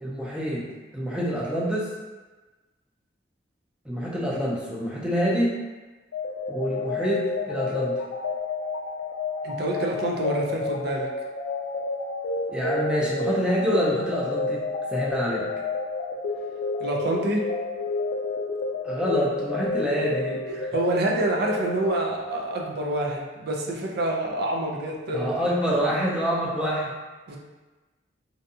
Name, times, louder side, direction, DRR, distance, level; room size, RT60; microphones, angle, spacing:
voice 1, 0.0-0.6 0.9-1.9 3.8-5.6 6.5-7.9 12.5-14.6 14.9-15.5 18.8-20.7 25.1-26.9, equal, 5° right, -6 dB, 0.5 m, -26 dB
sound 1, 6.1-22.7, left 3 dB, 85° left, 0.4 m, -30 dB
voice 2, 9.4-11.1 16.8-17.5 20.7-25.3 27.3-27.4, right 1 dB, 60° right, 0 dB, 0.4 m, -27 dB
2.6 x 2.2 x 2.6 m, 1.2 s
head